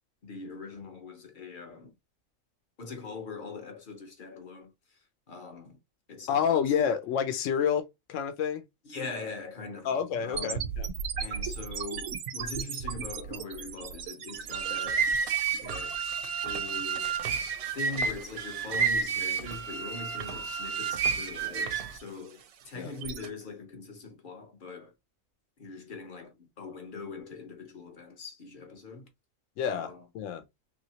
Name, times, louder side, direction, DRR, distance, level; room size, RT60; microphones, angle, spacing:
voice 1, 0.2-1.9 2.8-5.8 6.1-6.8 8.8-10.7 11.2-15.1 15.5-17.2 17.6-24.9 25.6-29.1 29.6-30.1, left 4 dB, 45° left, 0.8 m, -42 dB
voice 2, 6.3-8.6 9.8-10.9 22.7-22.9 29.6-30.4, left 7 dB, 70° left, 1.0 m, -29 dB
sound 1, 10.3-23.3, right 7 dB, 90° right, 1.1 m, -39 dB
sound 2, 14.3-22.0, right 6 dB, 60° right, 0.7 m, -30 dB
3.1 x 2.7 x 2.8 m
omnidirectional pair, 1.4 m